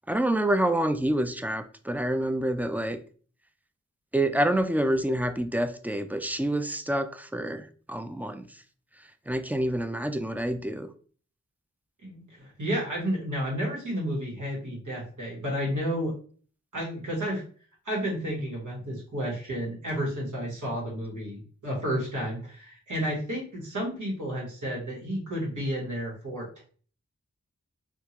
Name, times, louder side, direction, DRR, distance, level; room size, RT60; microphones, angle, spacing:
voice 1, 0.1-3.0 4.1-8.5 9.3-10.9, right 1 dB, 5° right, 0.3 m, -27 dB
voice 2, 12.0-16.1 16.7-17.4 17.8-26.6, equal, 85° right, 1.5 m, -31 dB
3.5 x 2.3 x 2.9 m
wide cardioid pair, 40°, 29 cm